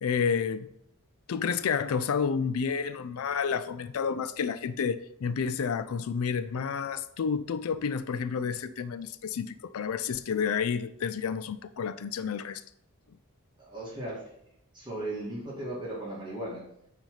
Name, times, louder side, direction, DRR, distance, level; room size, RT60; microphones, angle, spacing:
voice 1, 0.0-0.7 1.3-12.6, left 6 dB, 70° left, 14 dB, 0.4 m, -30 dB
voice 2, 13.6-14.2 14.7-16.6, right 1 dB, 20° right, -6 dB, 2.1 m, -36 dB
9.1 x 3.4 x 5.6 m, 0.75 s
head